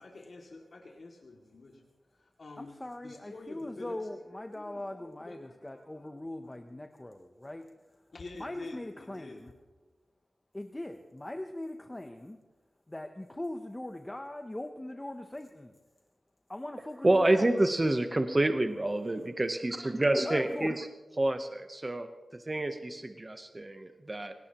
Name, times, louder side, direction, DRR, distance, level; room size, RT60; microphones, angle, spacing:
voice 1, 0.0-1.8 2.1-2.8 3.0-4.2 4.5-6.6 8.1-9.5, left 3 dB, 60° left, 0 dB, 2.3 m, -48 dB
voice 2, 2.6-7.7 8.4-9.5 10.5-12.4 12.9-15.7 16.5-17.5 20.2-20.7, left 1 dB, 15° left, 6 dB, 0.7 m, -40 dB
voice 3, 17.0-20.9 21.2-24.3, right 1 dB, 25° right, 7 dB, 0.9 m, -28 dB
25.0 x 18.0 x 3.0 m, 1.2 s
wide cardioid pair, 120°, 0 cm